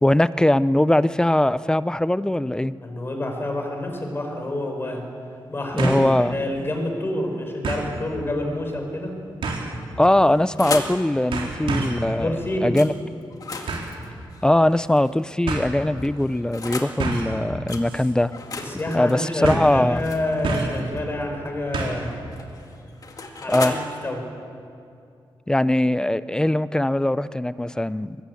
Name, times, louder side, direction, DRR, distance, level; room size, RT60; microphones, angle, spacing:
voice 1, 0.0-2.7 5.7-6.4 10.0-12.9 14.4-18.3 18.9-20.0 23.5-23.7 25.5-28.2, left 1 dB, 10° left, 16 dB, 0.5 m, -21 dB
voice 2, 2.8-5.1 5.5-6.0 6.3-9.2 12.2-12.8 18.6-22.1 23.4-24.3, left 1 dB, 25° left, 3 dB, 4.6 m, -28 dB
sound 1, 3.9-4.0 5.8-6.1 6.5-6.6 7.6-7.9 9.4-9.8 10.7-11.0 11.3-12.1 13.7-14.0 15.0-15.1 15.5-15.7 17.0-17.4 17.8-18.1 18.4-18.5 19.4-19.8 20.4-20.8 21.7-22.1 22.4-22.5, right 3 dB, 85° right, 3.9 m, -27 dB
sound 2, 10.0-11.0 12.7-12.9 13.3-15.2 16.0-17.0 17.7-17.9 18.3-21.0 22.1-23.8, left 3 dB, 45° left, 2.1 m, -35 dB
23.5 x 20.5 x 8.4 m, 2.5 s
wide cardioid pair, 140°, 9 cm